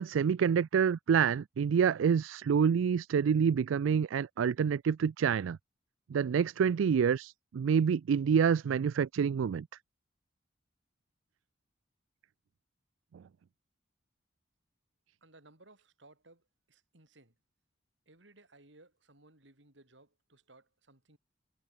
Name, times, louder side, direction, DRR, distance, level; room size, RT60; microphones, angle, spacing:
voice 1, 0.0-5.6 6.1-9.7, right 7 dB, 90° right, 0.4 m, -27 dB
voice 2, 15.2-16.4 16.7-17.3 18.1-21.2, right 2 dB, 70° right, 4.0 m, -60 dB
head